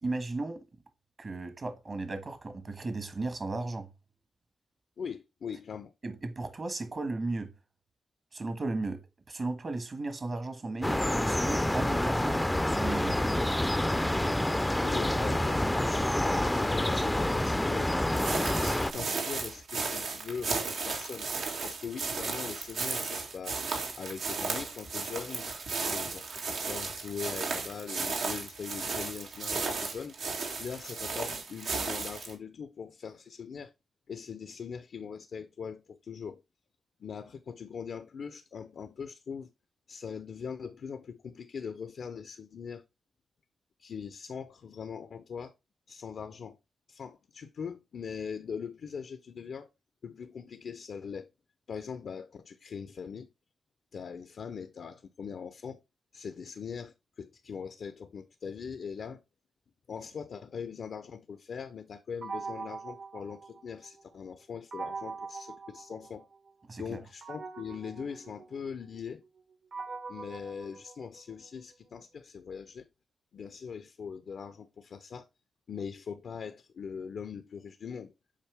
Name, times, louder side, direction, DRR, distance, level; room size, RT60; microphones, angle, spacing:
voice 1, 0.0-0.6 1.2-3.9 6.0-7.5 8.3-9.0 9.3-13.3 66.7-67.0, right 3 dB, 50° right, 1.4 m, -35 dB
voice 2, 5.0-5.9 14.8-17.9 18.6-21.3 21.6-23.6 24.0-25.5 25.8-30.2 30.6-33.7 34.1-36.4 37.0-39.5 39.9-42.8 43.8-45.5 45.9-46.6 46.9-49.7 50.0-51.3 51.7-53.3 53.9-55.8 56.1-59.2 59.9-66.3 66.8-69.2 70.1-72.9 73.3-75.3 75.7-78.1, left 6 dB, 75° left, 0.6 m, -41 dB
sound 1, 10.8-18.9, left 1 dB, 10° left, 0.4 m, -28 dB
sound 2, 18.1-32.3, right 4 dB, 90° right, 1.7 m, -34 dB
sound 3, 62.2-64.0 64.7-66.5 67.2-71.5, right 4 dB, 65° right, 1.4 m, -43 dB
7.4 x 4.5 x 3.4 m
cardioid pair, 75°, 0 cm